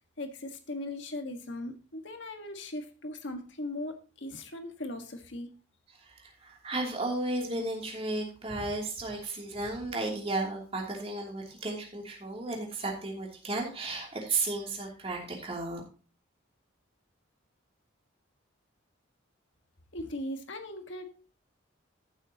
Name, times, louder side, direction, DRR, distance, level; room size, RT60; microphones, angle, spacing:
voice 1, 0.2-5.5 19.9-21.1, left 1 dB, 70° left, 5 dB, 1.6 m, -39 dB
voice 2, 6.0-15.8, right 2 dB, 30° right, -1 dB, 3.0 m, -34 dB
14.5 x 8.4 x 2.9 m, 0.36 s
head